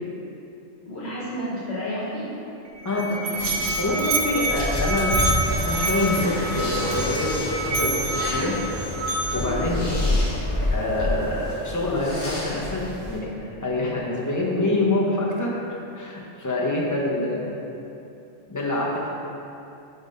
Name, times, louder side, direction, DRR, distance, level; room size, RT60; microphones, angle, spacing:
voice 1, 0.8-2.3 2.8-3.6 17.2-17.3, equal, 65° left, -10 dB, 1.6 m, -32 dB
Musical instrument, 2.7-9.6, right 2 dB, 65° right, 0.8 m, -28 dB
voice 2, 2.8-3.2 3.8-8.6 9.3-10.0 10.7-15.6 15.9-17.5 18.5-19.1, left 2 dB, 20° left, -5 dB, 0.8 m, -26 dB
sound 1, 3.3-13.2, left 1 dB, 45° left, 1.5 m, -28 dB
5.1 x 4.0 x 5.2 m, 2.8 s
omnidirectional pair, 1.2 m